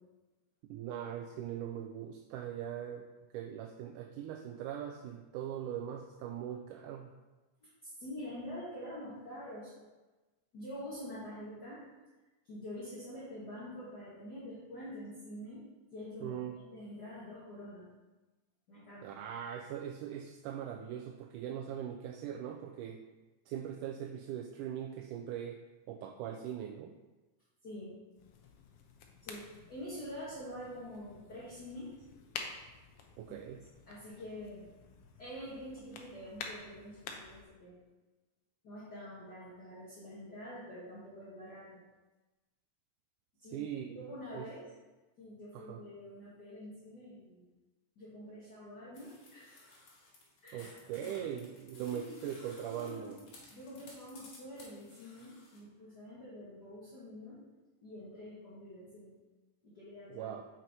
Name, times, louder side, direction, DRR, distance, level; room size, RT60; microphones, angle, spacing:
voice 1, 0.7-3.1 3.3-7.1 16.2-16.6 19.0-23.0 23.5-25.6 25.9-26.9 33.2-33.6 43.4-44.5 45.5-45.8 50.5-53.2 60.1-60.4, right 9 dB, 80° right, 4 dB, 2.0 m, -41 dB
voice 2, 7.6-9.7 10.5-11.8 12.4-15.6 15.9-17.9 18.7-19.0 27.6-27.9 29.2-31.9 33.9-34.7 35.2-37.7 38.6-41.8 43.4-43.6 44.0-44.6 45.2-47.4 48.0-49.5 50.4-50.7 51.0-51.3 51.9-52.2 52.7-53.2 53.5-57.4 57.8-59.1 59.6-60.4, equal, 35° left, -10 dB, 2.1 m, -46 dB
sound 1, 28.1-37.5, left 5 dB, 80° left, 1.3 m, -50 dB
sound 2, 48.9-55.6, left 2 dB, 65° left, 3.4 m, -57 dB
7.5 x 6.0 x 4.6 m, 1.2 s
omnidirectional pair, 3.8 m